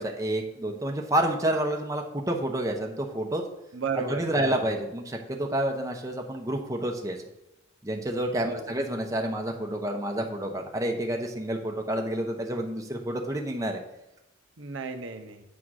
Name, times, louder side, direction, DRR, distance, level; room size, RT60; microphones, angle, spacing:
voice 1, 0.0-3.4 4.1-7.2 7.8-13.8, right 1 dB, 15° right, 2 dB, 0.8 m, -29 dB
voice 2, 3.7-4.7 8.4-8.7 14.6-15.4, right 5 dB, 70° right, 5 dB, 0.8 m, -34 dB
8.5 x 3.8 x 6.2 m, 0.94 s
head